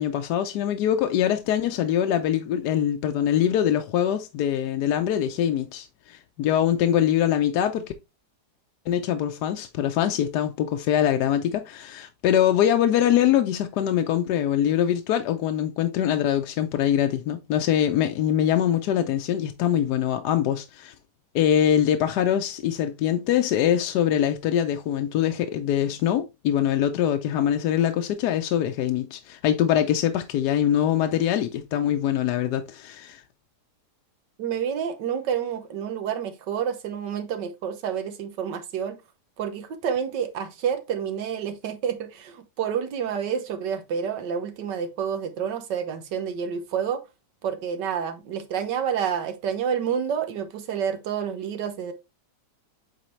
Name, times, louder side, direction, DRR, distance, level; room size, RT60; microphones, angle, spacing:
voice 1, 0.0-7.9 8.9-20.9 21.3-33.2, left 10 dB, 75° left, 1.1 m, -23 dB
voice 2, 34.4-39.0 39.4-47.0 47.4-51.9, right 8 dB, 85° right, 1.6 m, -29 dB
8.1 x 3.8 x 3.1 m
omnidirectional pair, 1.8 m